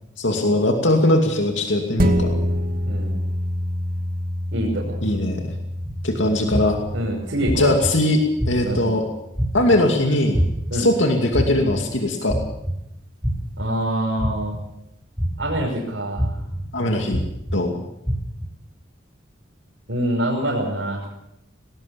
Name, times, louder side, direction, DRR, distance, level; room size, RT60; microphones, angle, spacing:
voice 1, 0.2-2.3 5.0-5.5 6.0-6.8 7.6-8.2 8.5-9.0 9.5-10.4 10.7-12.4 16.7-17.2 17.5-17.8, left 1 dB, 75° left, 3 dB, 2.5 m, -20 dB
sound 1, 2.0-10.8 11.2-11.3, equal, 50° right, 2.3 m, -27 dB
voice 2, 2.9-3.2 4.5-5.0 6.9-7.7 8.6-8.9 10.7-10.9 13.6-14.6 15.4-16.4 19.9-21.0, right 1 dB, 65° right, -5 dB, 5.8 m, -25 dB
sound 2, 5.8-5.9 6.5-6.9 7.5-7.9 8.4-8.8 9.4-9.8 10.3-10.8 11.3-11.8 12.3-12.7 13.2-13.6 14.2-14.6 15.2-15.6 16.2-16.6 17.1-17.6 18.1-18.5, equal, 5° right, 3.4 m, -24 dB
19.5 x 19.0 x 7.0 m, 0.83 s
head